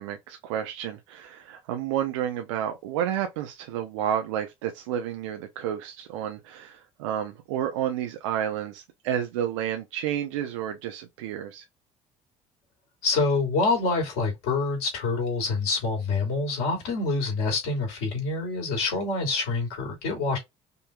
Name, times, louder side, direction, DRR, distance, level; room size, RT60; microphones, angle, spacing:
voice 1, 0.0-11.6, right 10 dB, 80° right, 0.8 m, -30 dB
voice 2, 13.0-20.4, left 3 dB, 80° left, 2.9 m, -26 dB
5.3 x 2.9 x 2.3 m
hypercardioid pair, 60°, 16 cm